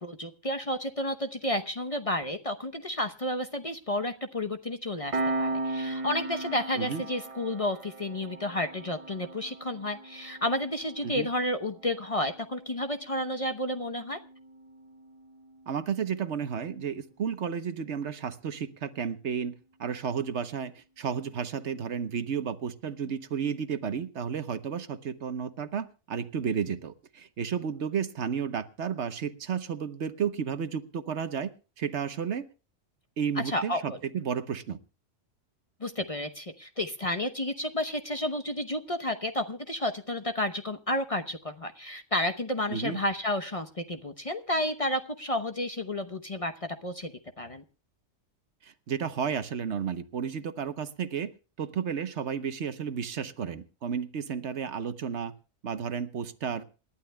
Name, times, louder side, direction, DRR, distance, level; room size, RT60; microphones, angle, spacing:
voice 1, 0.0-14.2 33.4-33.8 35.8-47.6, left 1 dB, 30° left, 7 dB, 0.9 m, -31 dB
Piano, 5.1-16.2, right 2 dB, 30° right, 0.8 m, -38 dB
voice 2, 15.7-31.5 31.8-32.5 33.2-34.8 42.7-43.0 48.6-51.3 51.6-55.3 55.6-56.6, right 7 dB, 65° right, 12 dB, 1.2 m, -32 dB
27.5 x 11.5 x 2.2 m, 0.33 s
omnidirectional pair, 1.3 m